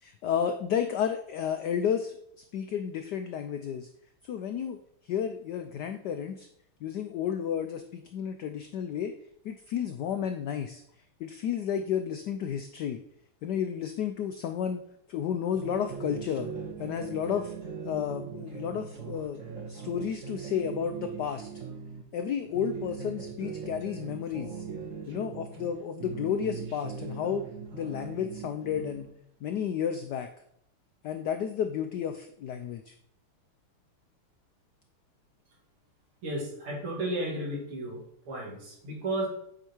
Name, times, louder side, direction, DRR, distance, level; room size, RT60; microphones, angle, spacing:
voice 1, 0.0-3.9 4.2-4.8 5.0-6.5 6.8-9.1 9.4-10.8 11.2-13.0 13.4-14.8 15.1-16.5 16.8-17.5 17.9-19.4 19.7-21.5 22.1-24.6 25.1-27.5 27.7-29.1 29.4-30.3 31.0-32.9, left 8 dB, 90° left, 8 dB, 0.9 m, -32 dB
sound 1, 15.5-22.0 22.4-25.7 26.0-29.1, right 6 dB, 45° right, 1.3 m, -40 dB
voice 2, 36.2-38.0 38.3-39.3, right 1 dB, 75° right, -4 dB, 3.5 m, -33 dB
8.1 x 4.9 x 4.4 m, 0.72 s
omnidirectional pair, 2.4 m